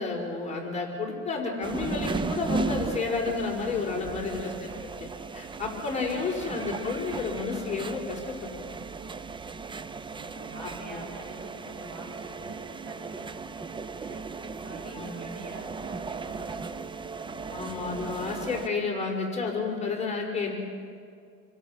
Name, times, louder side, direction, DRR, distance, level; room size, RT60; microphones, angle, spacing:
voice 1, 0.0-8.8 10.6-11.0 14.9-15.3 17.5-20.5, left 4 dB, 20° left, -2 dB, 4.9 m, -31 dB
sound 1, 1.6-18.7, right 4 dB, 15° right, 0.5 m, -36 dB
voice 2, 3.7-4.1 6.0-6.2 9.8-17.5, right 2 dB, 50° right, 1 dB, 7.8 m, -47 dB
29.0 x 23.0 x 6.5 m, 2.3 s
cardioid pair, 130°, 32 cm